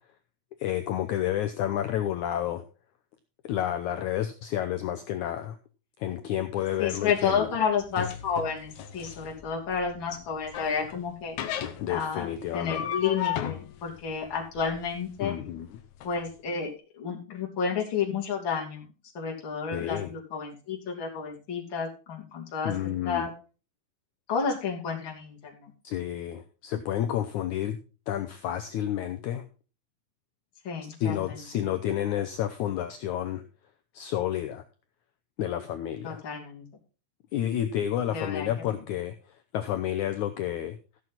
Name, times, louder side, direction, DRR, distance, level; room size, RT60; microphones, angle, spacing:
voice 1, 0.6-2.6 3.4-5.6 6.0-7.5 11.8-12.9 15.2-15.8 19.7-20.1 22.6-23.3 25.8-27.8 28.1-29.4 31.0-33.4 33.9-34.6 35.4-36.2 37.3-40.8, left 11 dB, 90° left, 8 dB, 1.7 m, -30 dB
sound 1, 6.6-16.1, left 10 dB, 65° left, 2.0 m, -37 dB
voice 2, 6.8-11.4 11.9-12.3 12.5-15.3 16.0-16.7 17.0-18.9 19.1-22.7 23.0-23.3 24.3-25.7 30.6-31.3 36.0-36.6 38.1-38.5, left 6 dB, 35° left, -2 dB, 3.0 m, -30 dB
15.0 x 7.4 x 3.9 m, 0.35 s
omnidirectional pair, 4.4 m